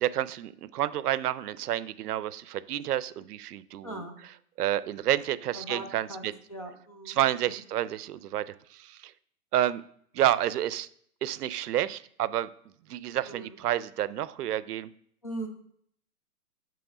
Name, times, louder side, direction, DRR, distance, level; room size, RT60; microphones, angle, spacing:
voice 1, 0.0-4.0 4.6-6.3 7.1-8.5 8.7-9.1 9.5-9.8 10.1-10.9 11.2-12.5 12.9-14.9, right 12 dB, 90° right, 16 dB, 0.5 m, -29 dB
voice 2, 3.8-4.2 5.5-7.6 13.2-13.5 15.2-15.5, right 1 dB, 25° left, 4 dB, 0.4 m, -40 dB
7.0 x 3.1 x 4.9 m, 0.66 s
hypercardioid pair, 165°, 45 cm